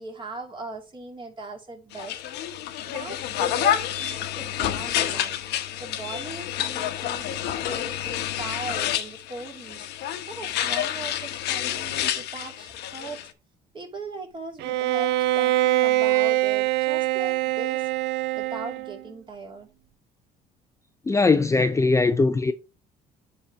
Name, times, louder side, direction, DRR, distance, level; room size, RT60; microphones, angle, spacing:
voice 1, 0.0-2.2 2.8-5.4 5.7-13.2 13.7-17.9 18.3-19.7, right 3 dB, 30° right, 3.1 m, -39 dB
sound 1, 1.9-13.3, left 11 dB, 80° left, 1.1 m, -29 dB
Bowed string instrument, 14.6-19.0, right 15 dB, 80° right, 0.6 m, -23 dB
voice 2, 21.1-22.5, left 3 dB, 20° left, 0.5 m, -20 dB
9.9 x 4.2 x 3.5 m
cardioid pair, 110°, 17 cm